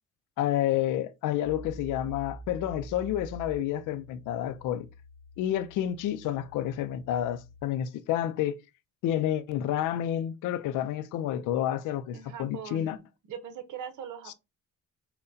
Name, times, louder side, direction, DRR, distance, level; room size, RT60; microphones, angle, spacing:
voice 1, 0.4-4.9 5.4-8.6 9.0-13.0 14.3-14.4, left 11 dB, 90° left, 0.5 m, -29 dB
sound 1, 1.4-7.6, right 2 dB, 15° right, 1.5 m, -47 dB
voice 2, 12.1-14.3, right 8 dB, 75° right, 0.9 m, -41 dB
5.6 x 2.2 x 2.7 m
cardioid pair, 90°, 30 cm